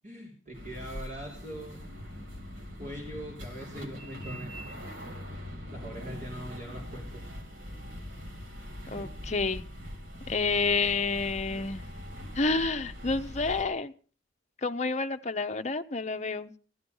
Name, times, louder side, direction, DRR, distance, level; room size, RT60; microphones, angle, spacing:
voice 1, 0.0-1.8 2.8-4.5 5.7-7.2 8.8-9.1, equal, 40° right, 3.4 m, -42 dB
sound 1, 0.5-13.6, equal, 85° right, 3.2 m, -42 dB
voice 2, 8.9-9.6 10.3-11.8 12.3-13.9 14.6-16.5, left 4 dB, 35° left, 0.7 m, -29 dB
16.0 x 12.0 x 5.4 m
head